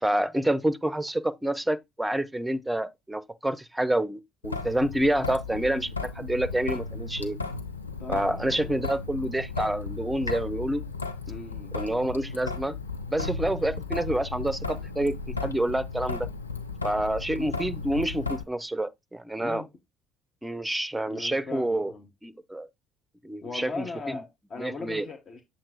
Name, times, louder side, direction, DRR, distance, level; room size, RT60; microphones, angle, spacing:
voice 1, 0.0-7.4 8.1-10.8 11.7-12.8 13.1-16.3 16.8-19.6 20.4-21.9 22.2-22.7 23.2-24.2 24.6-25.1, right 1 dB, 10° right, 0.6 m, -28 dB
Traffic noise roadway noise / Drip / Trickle dribble, 4.4-18.4, left 4 dB, 85° left, 0.6 m, -35 dB
voice 2, 8.0-8.8 11.3-11.8 19.4-19.7 21.1-22.1 23.4-25.4, left 4 dB, 40° left, 1.0 m, -39 dB
7.3 x 2.7 x 5.0 m
figure-of-eight pair, 55°, 0 cm